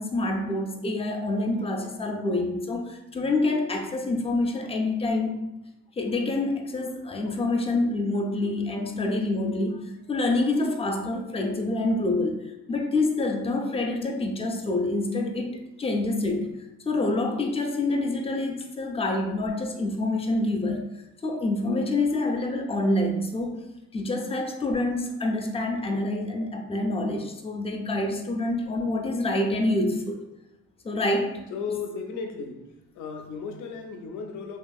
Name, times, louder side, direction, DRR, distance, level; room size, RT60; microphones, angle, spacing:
voice 1, 0.0-5.3 6.0-16.5 16.9-20.8 21.2-23.6 23.9-30.2 30.8-31.4, left 2 dB, 20° left, 3 dB, 0.3 m, -27 dB
voice 2, 31.5-32.7 32.9-34.6, left 5 dB, 80° left, 4 dB, 0.5 m, -35 dB
2.7 x 2.4 x 2.3 m, 0.90 s
cardioid pair, 90°, 30 cm